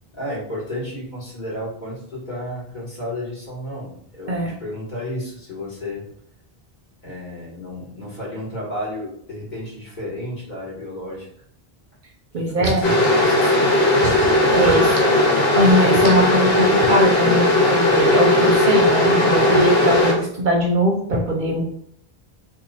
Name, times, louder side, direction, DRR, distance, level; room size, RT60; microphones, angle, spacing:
voice 1, 0.1-6.0 7.0-11.3 12.3-13.7 14.8-15.4, left 1 dB, 45° left, -6 dB, 1.5 m, -32 dB
voice 2, 12.3-12.9 14.0-15.0 15.5-21.6, right 1 dB, 55° right, 0 dB, 0.7 m, -20 dB
sound 1, 12.8-20.1, left 1 dB, 90° left, 1.1 m, -17 dB
2.9 x 2.3 x 4.0 m, 0.66 s
omnidirectional pair, 1.0 m